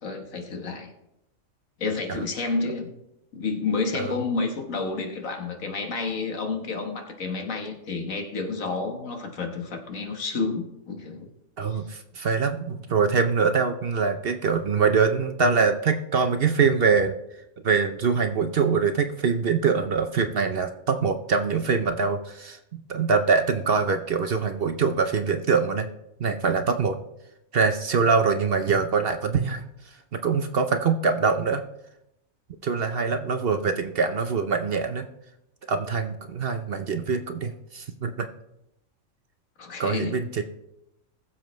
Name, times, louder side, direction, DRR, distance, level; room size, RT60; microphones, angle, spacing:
voice 1, 0.0-0.9 1.8-2.9 3.3-11.3 11.7-11.8 39.6-40.1, left 4 dB, 75° left, 4 dB, 1.8 m, -30 dB
voice 2, 11.6-17.1 17.6-22.6 22.9-25.9 26.2-27.0 27.5-29.6 30.1-31.6 32.6-35.1 35.7-38.3 39.8-40.4, right 5 dB, 55° right, 7 dB, 0.8 m, -24 dB
20.5 x 7.3 x 3.2 m, 0.85 s
omnidirectional pair, 1.4 m